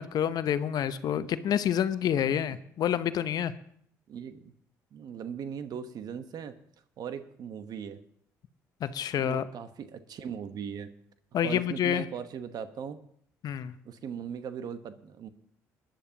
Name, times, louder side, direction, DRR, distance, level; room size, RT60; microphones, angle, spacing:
voice 1, 0.0-3.5 8.8-9.4 11.3-12.1 13.4-13.7, left 9 dB, 60° left, 13 dB, 0.8 m, -28 dB
voice 2, 2.3-2.6 4.1-4.5 4.9-6.5 7.0-8.0 9.2-10.9 11.4-13.0 13.8-15.3, right 7 dB, 60° right, 10 dB, 1.1 m, -39 dB
21.5 x 10.5 x 2.9 m, 0.64 s
hypercardioid pair, 60°, 8 cm